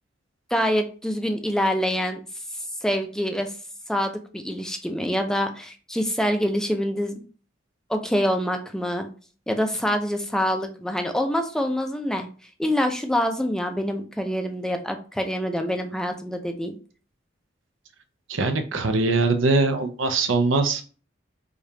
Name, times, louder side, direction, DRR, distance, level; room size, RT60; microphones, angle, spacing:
voice 1, 0.5-2.2 2.8-3.5 3.9-7.2 7.9-9.1 9.5-12.3 12.6-16.8, equal, 5° left, 5 dB, 0.4 m, -25 dB
voice 2, 18.3-20.8, right 3 dB, 85° right, 7 dB, 0.6 m, -22 dB
5.0 x 2.4 x 2.7 m, 0.38 s
head